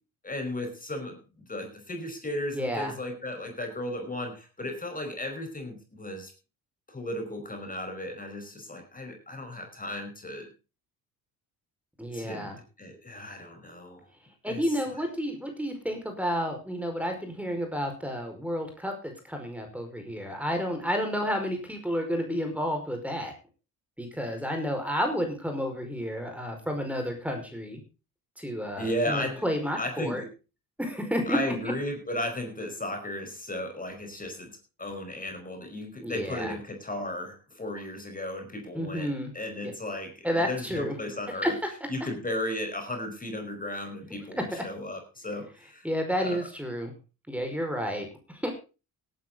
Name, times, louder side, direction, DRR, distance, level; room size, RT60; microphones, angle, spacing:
voice 1, 0.2-6.3 6.9-10.5 12.1-12.5 12.8-14.1 14.4-15.0 28.8-29.4 29.8-30.3 31.3-34.5 34.8-41.5 41.9-45.9 46.2-46.4, left 1 dB, 20° left, 5 dB, 4.9 m, -35 dB
voice 2, 2.5-2.9 12.0-12.6 14.4-23.3 24.0-27.8 28.4-30.2 30.8-31.4 31.6-31.7 36.0-36.5 38.7-39.3 39.6-39.7 40.2-40.9 41.4-41.5 44.4-44.6 45.8-46.9 47.3-48.5, equal, 5° right, 4 dB, 5.0 m, -31 dB
17.5 x 10.5 x 3.9 m, 0.31 s
supercardioid pair, 70°, 37 cm